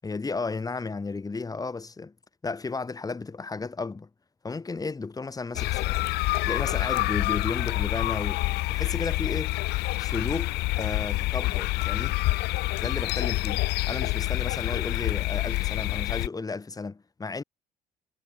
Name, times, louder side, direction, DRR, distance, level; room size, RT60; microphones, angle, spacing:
voice 1, 0.0-2.1 2.4-4.1 4.4-6.1 6.4-8.4 8.7-9.6 10.0-12.2 12.8-17.4, left 4 dB, 20° left, 3.8 m, -33 dB
sound 1, 5.6-16.3, left 20 dB, 80° left, 0.4 m, -27 dB
cardioid pair, 110°, 17 cm